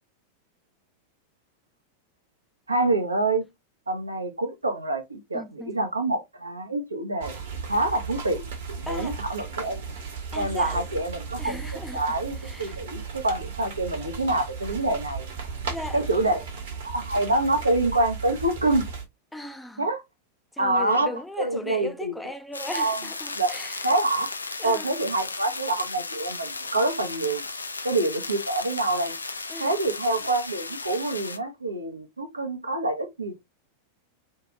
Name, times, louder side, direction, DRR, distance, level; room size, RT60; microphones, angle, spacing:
voice 1, 2.7-3.4 3.9-7.4 7.7-9.8 10.4-15.3 15.9-16.4 16.8-18.8 19.8-20.0 20.6-21.1 21.4-22.2 22.7-23.0 23.3-23.6 23.8-24.3 24.6-27.4 27.8-29.1 29.6-33.4, right 2 dB, 80° right, 0.6 m, -26 dB
voice 2, 5.3-5.8 8.9-9.2 10.3-10.8 11.4-12.8 15.7-16.3 19.3-19.9 20.5-23.8 24.6-24.9 29.5-29.8, left 1 dB, 5° left, 0.4 m, -37 dB
sound 1, 7.2-19.0, right 5 dB, 60° right, 1.0 m, -36 dB
sound 2, 22.5-31.4, left 3 dB, 80° left, 0.3 m, -35 dB
2.7 x 2.3 x 2.9 m
figure-of-eight pair, 90°, 0 cm